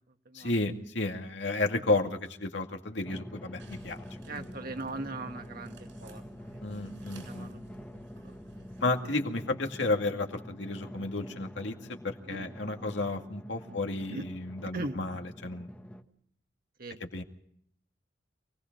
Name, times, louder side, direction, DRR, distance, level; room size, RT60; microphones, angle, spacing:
voice 1, 0.3-4.4 6.6-7.5 8.8-15.7 17.1-17.2, left 2 dB, 70° left, 4 dB, 2.2 m, -32 dB
Drum, 3.1-16.0, equal, 10° left, 1.4 m, -46 dB
sound 1, 3.6-9.0, right 1 dB, 85° right, 7.6 m, -55 dB
voice 2, 4.2-6.6 7.2-7.6 7.9-8.7 12.3-12.5 13.7-13.8 14.1-14.2 14.7-15.0 16.8-17.0, right 2 dB, 50° right, 6 dB, 1.7 m, -40 dB
27.5 x 19.0 x 5.4 m, 0.67 s
head